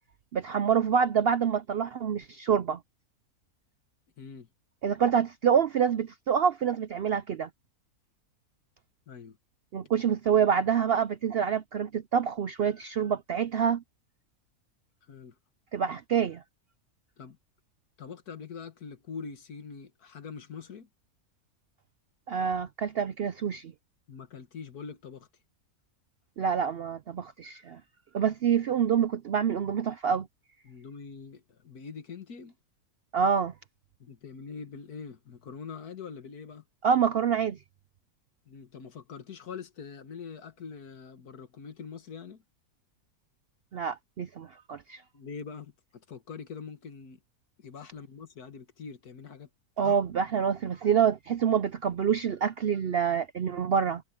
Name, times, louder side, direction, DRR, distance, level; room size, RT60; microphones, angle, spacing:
voice 1, 0.3-2.8 4.8-7.5 9.7-13.8 15.7-16.4 22.3-23.7 26.4-27.8 28.1-30.3 33.1-33.5 36.8-37.6 43.7-45.0 49.8-54.0, right 7 dB, 65° right, 0.6 m, -26 dB
voice 2, 4.2-4.5 9.1-9.4 15.1-15.4 17.2-17.4 18.0-20.9 24.1-25.3 30.6-32.6 34.0-36.6 38.5-42.4 45.1-47.2 47.6-49.5 49.8-49.9, left 5 dB, 85° left, 2.1 m, -43 dB
omnidirectional pair, 1.6 m